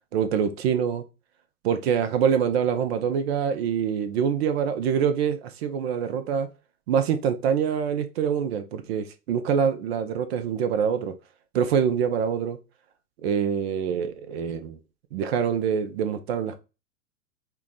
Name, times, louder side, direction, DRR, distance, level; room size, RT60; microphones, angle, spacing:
voice 1, 0.1-1.0 1.6-6.5 6.9-11.2 11.5-12.6 13.2-14.8 15.1-16.6, right 7 dB, 40° right, 0.7 m, -25 dB
4.6 x 2.3 x 3.8 m
figure-of-eight pair, 95°, 47 cm